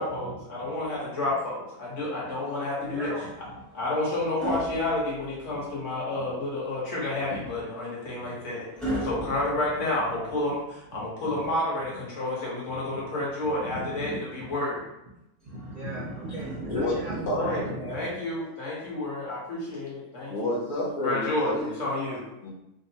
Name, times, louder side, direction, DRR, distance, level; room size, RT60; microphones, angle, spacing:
voice 1, 0.0-3.3 3.7-8.7 9.0-14.8 17.4-17.6 17.9-20.5 21.0-22.2, left 2 dB, 55° left, -6 dB, 1.3 m, -30 dB
voice 2, 2.8-3.3 5.5-5.6 7.3-7.4 8.9-9.1 11.2-11.5 12.9-13.0 13.5-14.2 15.5-18.4, right 1 dB, 70° right, -6 dB, 0.4 m, -36 dB
sound 1, 3.2-5.7 7.3-10.5 12.3-13.4 15.4-17.2 18.4-18.7, equal, ahead, 0.3 m, -39 dB
voice 3, 16.7-17.0 17.3-17.6 20.3-21.7 22.1-22.2 22.4-22.5, left 1 dB, 90° left, -5 dB, 0.4 m, -29 dB
3.2 x 2.1 x 2.7 m, 0.88 s
omnidirectional pair, 1.6 m